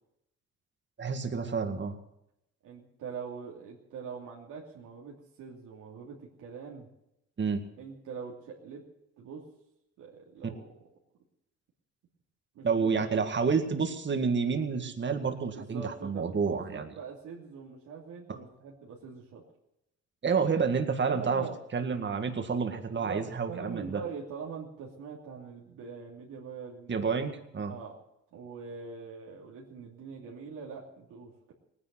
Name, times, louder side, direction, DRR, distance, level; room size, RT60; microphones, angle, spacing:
voice 1, 1.0-2.0 7.4-7.6 12.6-16.9 20.2-21.4 21.7-24.0 26.9-27.7, right 5 dB, 40° right, 6 dB, 2.0 m, -29 dB
voice 2, 2.6-6.9 7.8-8.8 9.2-9.4 10.0-10.7 12.5-13.2 15.5-19.4 21.0-21.5 22.9-27.0 27.7-28.0 28.3-31.5, right 6 dB, 85° right, -3 dB, 3.0 m, -43 dB
18.5 x 10.0 x 7.6 m, 0.82 s
cardioid pair, 90°, 30 cm